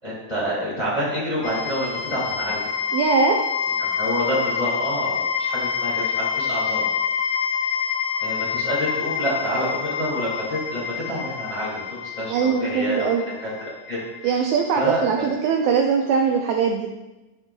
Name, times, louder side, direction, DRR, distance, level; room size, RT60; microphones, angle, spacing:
voice 1, 0.0-2.7 3.9-6.9 8.2-14.4 14.7-15.3, equal, 20° left, -8 dB, 1.5 m, -28 dB
sound 1, 1.4-15.3, left 6 dB, 70° left, 1.7 m, -27 dB
voice 2, 2.9-3.4 12.3-13.2 14.2-16.9, right 6 dB, 90° right, 2 dB, 1.6 m, -21 dB
8.9 x 5.8 x 2.2 m, 1.1 s
omnidirectional pair, 3.9 m